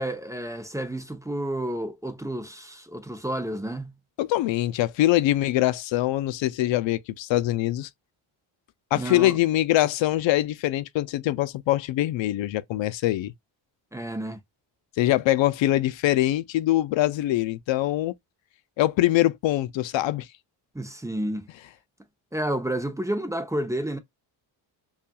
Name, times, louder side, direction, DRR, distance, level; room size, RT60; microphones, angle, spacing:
voice 1, 0.0-3.9 8.9-9.4 13.9-14.4 20.7-21.5 22.3-24.0, right 1 dB, 5° right, 0.7 m, -30 dB
voice 2, 4.2-7.9 8.9-13.3 15.0-18.1 18.8-20.3, left 15 dB, 70° left, 0.5 m, -23 dB
5.5 x 2.5 x 2.3 m
cardioid pair, 110°, 47 cm